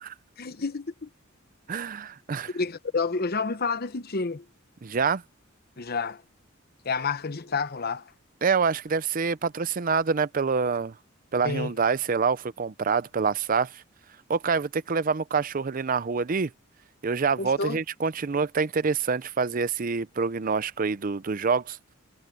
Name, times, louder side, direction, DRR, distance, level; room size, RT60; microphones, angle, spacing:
voice 1, 0.4-1.1 2.5-4.4 5.8-6.2 6.8-8.1 11.4-11.7 17.4-17.8, left 4 dB, 50° left, 1.0 m, -29 dB
voice 2, 1.7-2.5 4.8-5.2 8.4-10.9 11.3-13.8 14.3-16.5 17.0-21.8, right 5 dB, 40° right, 0.5 m, -26 dB
head